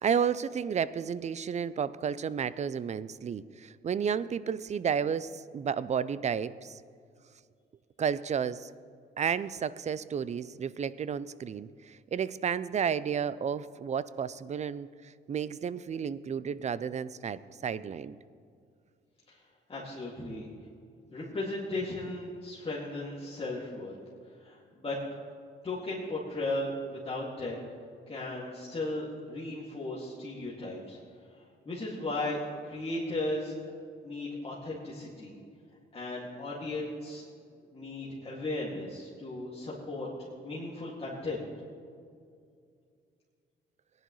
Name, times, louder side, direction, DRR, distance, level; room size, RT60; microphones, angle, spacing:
voice 1, 0.0-6.8 8.0-8.7 9.2-14.9 15.3-18.2, right 7 dB, 35° right, 17 dB, 0.4 m, -32 dB
voice 2, 19.7-20.5 21.1-23.9 24.4-25.0 25.6-27.6 28.1-31.0 31.3-33.7 34.0-35.3 35.9-37.2 37.7-41.5, left 2 dB, 30° left, -6 dB, 2.2 m, -36 dB
18.0 x 10.5 x 3.2 m, 2.3 s
cardioid pair, 90°, 20 cm